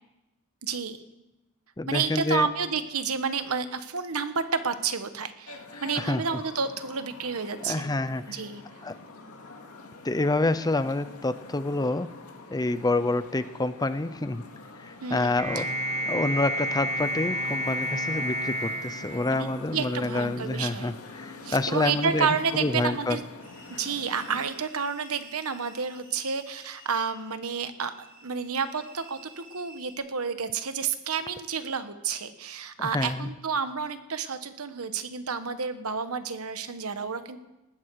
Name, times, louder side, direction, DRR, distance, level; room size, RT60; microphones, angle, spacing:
voice 1, 0.6-1.0 1.9-7.9 8.3-8.6 15.0-15.6 19.3-20.9 21.4-23.3 23.7-27.9 28.2-37.4, right 5 dB, 70° right, 10 dB, 1.2 m, -30 dB
voice 2, 1.8-2.5 6.0-6.2 7.6-8.2 8.8-8.9 10.0-12.1 12.5-14.4 14.8-15.7 16.1-22.3 22.5-23.2 32.9-33.3, left 2 dB, 20° left, 13 dB, 0.6 m, -27 dB
sound 1, 5.5-24.5, left 3 dB, 80° left, 2.1 m, -46 dB
sound 2, 15.4-19.9, right 1 dB, 30° right, 1.6 m, -30 dB
sound 3, 23.4-29.9, right 1 dB, 45° right, 5.3 m, -52 dB
19.5 x 15.0 x 4.7 m, 0.98 s
head